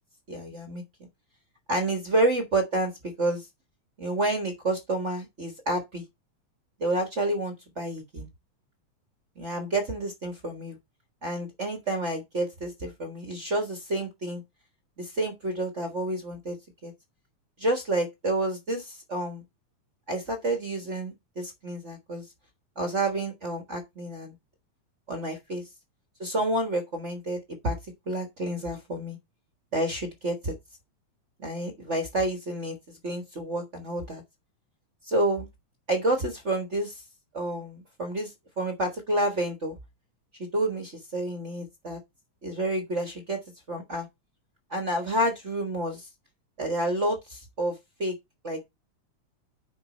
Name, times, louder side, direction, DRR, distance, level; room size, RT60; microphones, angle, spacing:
voice 1, 0.3-0.8 1.7-2.9 3.2-3.5 4.0-6.0 6.8-8.3 9.4-10.8 11.2-14.4 15.0-16.6 16.8-16.9 17.6-19.4 20.1-22.3 22.7-24.3 25.1-25.6 26.2-27.7 28.1-29.2 29.7-30.6 31.4-34.2 35.0-35.5 35.9-37.0 37.3-39.7 40.4-42.0 42.4-43.4 43.7-44.1 44.7-46.1 46.6-48.1 48.4-48.6, right 1 dB, 45° right, 0.9 m, -29 dB
9.3 x 5.0 x 4.1 m
omnidirectional pair, 3.5 m